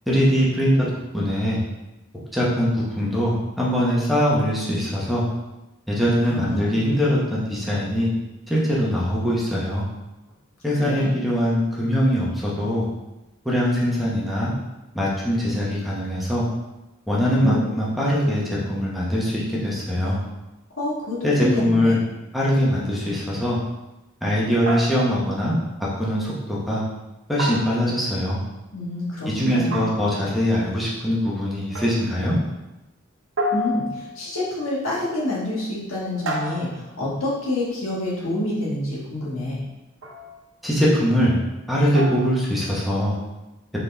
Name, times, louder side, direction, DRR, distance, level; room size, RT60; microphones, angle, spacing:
voice 1, 0.1-0.9 1.1-1.6 2.3-5.2 5.9-8.1 8.5-9.8 10.6-12.9 13.4-14.5 14.9-16.5 17.1-20.2 21.2-22.0 22.3-23.6 24.2-25.6 26.0-26.8 27.3-28.4 29.3-32.4 40.6-41.4 41.7-43.1, equal, ahead, -6 dB, 0.9 m, -22 dB
voice 2, 6.2-6.7 10.7-11.1 17.4-17.7 20.8-22.0 28.7-29.8 33.5-36.7 37.0-39.6, left 1 dB, 85° left, -6 dB, 1.6 m, -27 dB
sound 1, 24.7-25.4 27.4-28.2 29.7-30.3 31.7-32.2 33.4-34.3 36.3-37.1 40.0-40.4 41.9-42.4, equal, 70° right, 0.7 m, -30 dB
4.0 x 3.9 x 3.4 m, 1.0 s
head